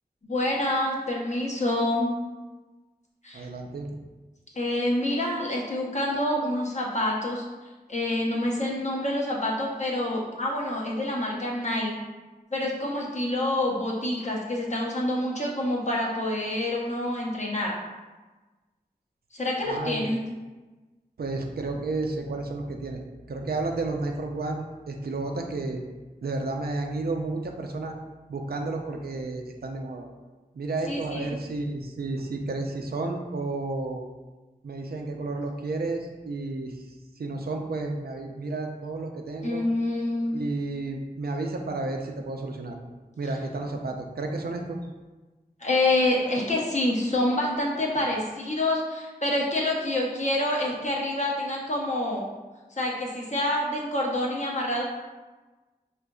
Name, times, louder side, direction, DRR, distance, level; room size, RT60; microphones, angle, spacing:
voice 1, 0.2-2.1 3.2-3.5 4.5-7.4 7.9-12.0 12.5-17.8 19.3-20.2 30.9-31.4 39.4-40.4 45.6-52.3 52.7-54.8, left 1 dB, 50° left, -3 dB, 0.8 m, -27 dB
voice 2, 3.3-4.0 19.7-20.1 21.2-23.0 23.3-25.8 26.2-27.9 28.3-30.1 30.5-34.1 34.6-36.7 37.2-39.6 40.3-42.8 43.2-44.8, right 2 dB, 85° right, 2 dB, 0.4 m, -31 dB
4.9 x 2.5 x 2.3 m, 1.2 s
wide cardioid pair, 45°, 16 cm